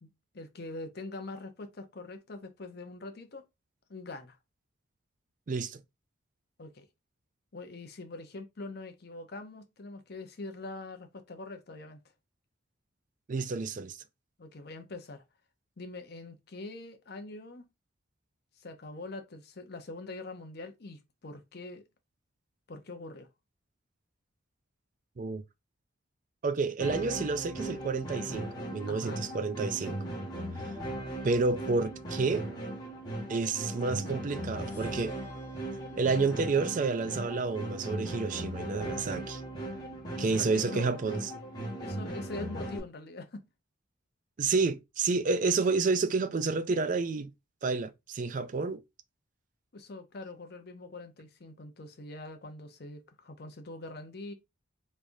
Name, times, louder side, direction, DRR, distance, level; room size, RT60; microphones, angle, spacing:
voice 1, 0.0-3.5 3.9-4.4 6.6-6.9 7.5-12.0 14.4-15.2 15.8-17.7 18.6-21.8 22.7-23.3 28.9-29.2 40.2-41.0 41.8-43.5 49.7-54.3, left 2 dB, 50° left, 0.7 m, -43 dB
voice 2, 5.5-5.8 13.3-14.0 25.2-25.4 26.4-30.0 31.2-32.4 33.3-35.1 35.9-39.4 40.2-41.2 44.4-47.3 47.6-48.8, right 4 dB, 40° right, 0.3 m, -30 dB
sound 1, 26.8-42.8, right 1 dB, 20° left, 1.1 m, -38 dB
3.5 x 3.2 x 2.6 m
head